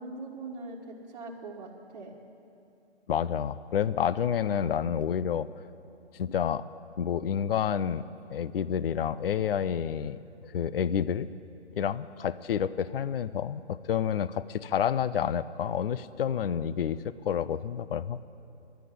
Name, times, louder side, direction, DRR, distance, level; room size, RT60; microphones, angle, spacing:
voice 1, 0.0-2.1, right 2 dB, 40° right, -6 dB, 1.5 m, -41 dB
voice 2, 3.1-5.5 6.1-6.6 7.0-8.0 8.3-10.2 10.4-11.3 11.8-18.2, left 8 dB, 55° left, 16 dB, 0.5 m, -29 dB
11.5 x 10.5 x 9.7 m, 2.7 s
figure-of-eight pair, 145°, 34 cm